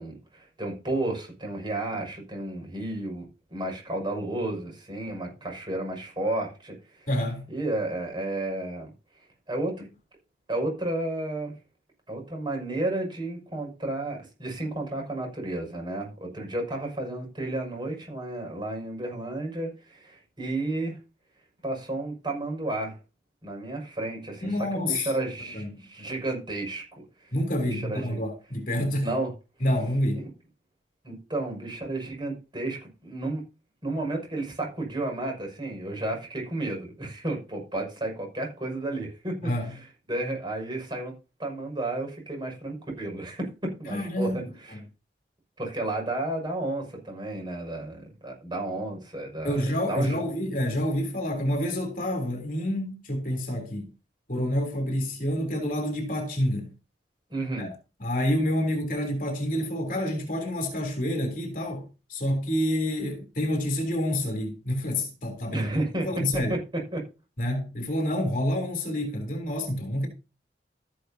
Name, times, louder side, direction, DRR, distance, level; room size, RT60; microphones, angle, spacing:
voice 1, 0.0-7.1 7.5-8.9 9.5-9.9 10.5-11.5 12.1-21.0 21.6-23.0 23.4-26.8 27.2-27.3 27.6-28.2 29.0-29.3 30.2-30.3 31.0-33.4 33.8-39.3 39.6-41.1 41.4-43.5 43.8-44.8 45.6-50.2 57.3-57.7 65.5-66.1 66.5-66.6 66.9-67.0, right 2 dB, 25° right, 6.1 m, -32 dB
voice 2, 7.1-7.5 24.4-25.1 25.5-25.8 27.3-29.1 29.6-30.3 39.4-39.7 43.9-44.4 49.4-53.9 54.3-56.7 57.6-57.7 58.0-65.7 66.0-66.6 67.4-70.1, left 1 dB, 50° left, 3.4 m, -28 dB
13.5 x 11.5 x 2.8 m
head